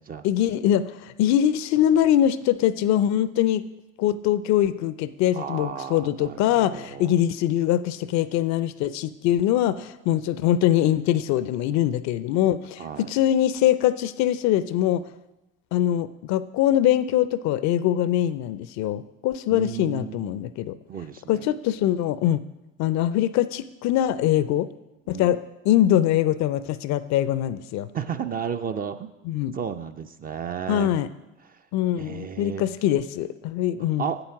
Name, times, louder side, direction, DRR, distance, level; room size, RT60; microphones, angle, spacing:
voice 1, 0.2-3.6 4.0-15.0 15.7-20.8 21.3-22.4 22.8-24.7 25.1-25.4 25.6-27.9 29.3-29.6 30.7-31.1 31.7-34.1, left 12 dB, 45° left, 15 dB, 0.5 m, -23 dB
voice 2, 5.3-7.1 12.8-13.1 19.5-20.3 20.9-21.5 25.1-25.4 27.9-29.1 29.5-30.9 31.5-31.6 32.0-32.7 34.0-34.2, right 7 dB, 20° right, 9 dB, 0.5 m, -33 dB
8.2 x 7.9 x 5.8 m, 0.99 s
hypercardioid pair, 75°, 41 cm